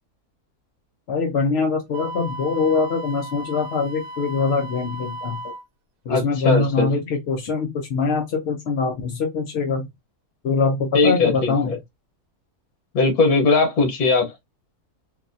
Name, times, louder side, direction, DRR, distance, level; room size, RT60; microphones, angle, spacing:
voice 1, 1.1-5.4 6.1-9.9 10.4-11.7, left 4 dB, 60° left, 0.7 m, -23 dB
Wind instrument woodwind instrument, 1.9-5.7, right 1 dB, 75° right, 1.1 m, -35 dB
voice 2, 6.1-6.9 10.9-11.8 12.9-14.3, left 3 dB, 85° left, 1.5 m, -19 dB
4.0 x 2.2 x 2.6 m
omnidirectional pair, 1.6 m